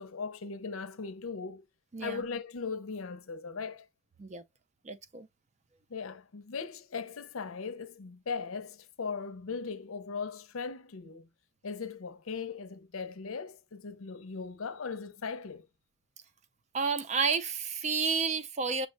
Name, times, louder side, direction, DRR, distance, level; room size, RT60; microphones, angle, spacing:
voice 1, 0.0-1.6 2.0-3.9 5.9-11.3 11.6-15.7, left 5 dB, 80° left, 0.6 m, -38 dB
voice 2, 1.9-2.2 4.2-4.4 4.8-5.3 16.7-18.9, right 5 dB, 35° right, 0.4 m, -31 dB
6.1 x 2.1 x 3.8 m
head